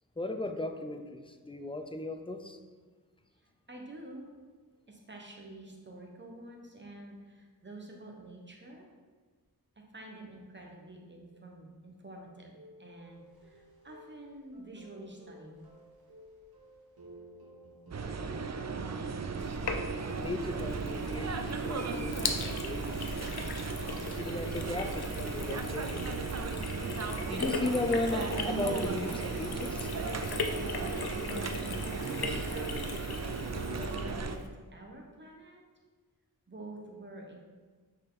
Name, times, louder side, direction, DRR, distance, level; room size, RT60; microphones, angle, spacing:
voice 1, 0.2-2.6 20.2-23.0 24.0-26.0 26.8-29.9, left 2 dB, 15° left, 6 dB, 0.4 m, -36 dB
voice 2, 3.4-4.3 4.9-8.9 9.7-15.6 30.6-31.8 32.1-32.8 33.7-34.4 34.7-35.6 36.5-37.4, right 1 dB, 30° right, 0 dB, 1.2 m, -48 dB
sound 1, 12.5-31.5, right 3 dB, 70° right, 1.2 m, -50 dB
sound 2, 17.9-34.4, right 4 dB, 45° right, 0.5 m, -36 dB
Sink (filling or washing), 19.4-34.5, left 4 dB, 80° left, 0.7 m, -39 dB
6.2 x 4.3 x 4.0 m, 1.5 s
wide cardioid pair, 65°, 38 cm